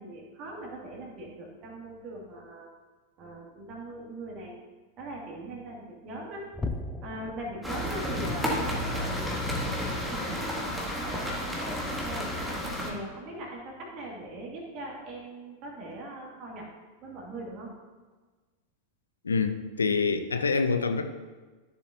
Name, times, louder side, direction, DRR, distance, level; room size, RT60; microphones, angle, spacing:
voice 1, 0.0-2.7 3.2-4.6 5.0-6.5 7.0-9.2 9.6-12.3 12.8-16.7 17.0-17.7, right 1 dB, 35° right, -1 dB, 2.4 m, -41 dB
sound 1, 6.5-13.2 13.6-13.8 14.3-14.4 15.0-15.1, left 3 dB, 10° left, 0.6 m, -43 dB
sound 2, 7.6-12.9, equal, 5° right, 1.7 m, -31 dB
voice 2, 19.2-21.1, left 4 dB, 75° left, 9 dB, 0.5 m, -26 dB
13.5 x 7.1 x 2.8 m, 1.3 s
figure-of-eight pair, 90°, 0 cm